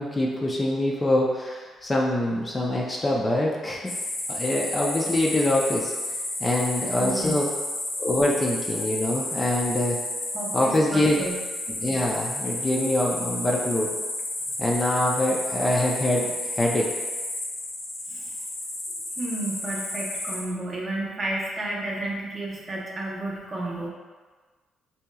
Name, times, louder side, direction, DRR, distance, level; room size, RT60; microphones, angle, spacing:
voice 1, 0.0-3.8 4.3-5.9 6.4-7.5 8.0-10.0 10.5-11.2 11.8-13.9 14.6-16.8, left 1 dB, 25° left, -2 dB, 0.5 m, -24 dB
sound 1, 3.9-20.4, left 1 dB, 65° left, 1.0 m, -32 dB
voice 2, 7.0-7.4 10.3-11.4 18.1-18.3 19.2-23.9, right 2 dB, 35° right, -3 dB, 0.8 m, -32 dB
4.3 x 2.8 x 2.3 m, 1.4 s
cardioid pair, 90°, 0 cm